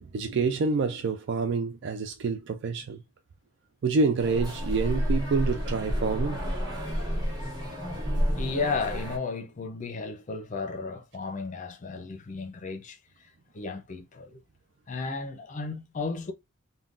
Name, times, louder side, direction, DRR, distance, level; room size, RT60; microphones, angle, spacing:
voice 1, 0.0-3.0 3.8-6.4, right 4 dB, 60° right, 0.4 m, -27 dB
sound 1, 4.2-9.2, equal, 20° right, 1.1 m, -30 dB
voice 2, 8.0-13.0 13.5-14.4 14.9-16.3, left 4 dB, 40° left, 0.5 m, -34 dB
3.6 x 2.2 x 2.4 m
head